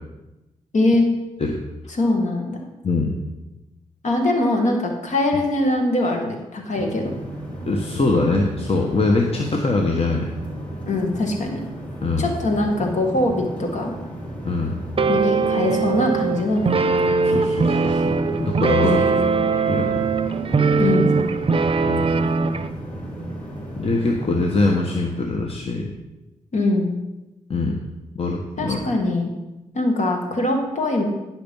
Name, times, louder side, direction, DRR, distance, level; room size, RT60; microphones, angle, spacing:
voice 1, 0.7-1.1 1.9-2.6 4.0-7.1 10.9-11.6 12.2-13.9 15.1-16.8 18.8-19.3 20.8-21.1 26.5-26.9 28.6-29.3 29.7-31.0, left 2 dB, 60° left, 2 dB, 2.3 m, -22 dB
voice 2, 2.8-3.2 7.7-10.3 12.0-12.3 14.4-14.7 17.2-19.0 19.7-20.1 21.9-22.0 23.8-25.9 27.5-27.8 28.1-28.8, left 3 dB, 45° left, 1 dB, 1.3 m, -22 dB
sound 1, 6.7-25.3, right 1 dB, 10° left, 3.4 m, -34 dB
sound 2, 15.0-22.7, right 4 dB, 45° right, 0.6 m, -21 dB
10.5 x 6.0 x 5.5 m, 1.0 s
supercardioid pair, 45°, 13 cm